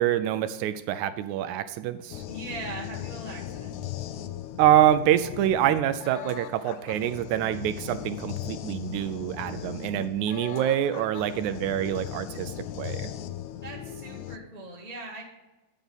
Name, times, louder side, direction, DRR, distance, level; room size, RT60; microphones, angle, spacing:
voice 1, 0.0-2.2 4.6-13.1, right 11 dB, 80° right, 11 dB, 1.8 m, -26 dB
sound 1, 2.1-14.4, left 11 dB, 80° left, 1.8 m, -38 dB
voice 2, 2.3-3.8 13.6-15.2, right 2 dB, 30° left, -4 dB, 0.7 m, -40 dB
10.0 x 6.0 x 5.4 m, 1.1 s
omnidirectional pair, 3.5 m